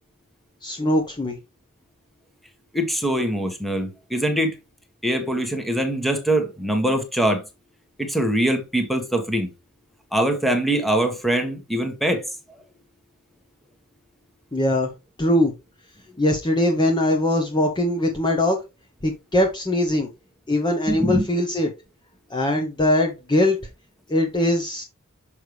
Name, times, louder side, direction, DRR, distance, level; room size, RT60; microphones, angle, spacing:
voice 1, 0.6-1.4 14.5-14.9 15.2-15.5 16.2-18.6 19.0-20.1 20.5-21.7 22.3-23.6 24.1-24.8, left 1 dB, 20° left, 0.8 m, -21 dB
voice 2, 2.7-4.5 5.0-7.4 8.0-9.5 10.1-12.2 20.9-21.2, right 1 dB, ahead, 1.3 m, -23 dB
6.5 x 5.4 x 3.2 m
head